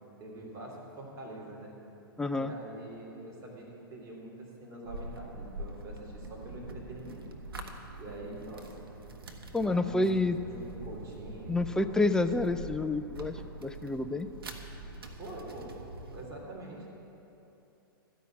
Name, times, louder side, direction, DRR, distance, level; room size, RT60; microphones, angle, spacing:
voice 1, 0.2-1.8 2.3-7.2 8.0-8.9 9.6-12.3 15.2-17.1, right 1 dB, 25° right, -3 dB, 3.0 m, -45 dB
voice 2, 2.2-2.5 9.5-10.4 11.5-14.3, left 2 dB, 5° left, 9 dB, 0.3 m, -29 dB
sound 1, 4.8-16.3, right 2 dB, 80° right, 1.1 m, -44 dB
13.0 x 5.5 x 8.3 m, 2.9 s
hypercardioid pair, 115°, 12 cm